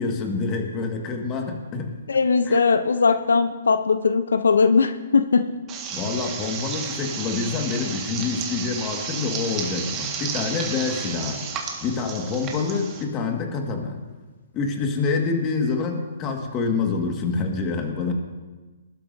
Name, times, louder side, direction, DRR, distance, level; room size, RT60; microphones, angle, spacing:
voice 1, 0.0-1.9 2.5-2.6 5.9-11.4 11.8-14.0 14.5-18.1, left 4 dB, 25° left, 3 dB, 1.7 m, -26 dB
voice 2, 2.1-5.5, left 5 dB, 90° left, 11 dB, 0.6 m, -19 dB
sound 1, 5.7-13.0, right 6 dB, 25° right, 1.6 m, -32 dB
20.5 x 12.0 x 2.6 m, 1.3 s
hypercardioid pair, 145°, 0 cm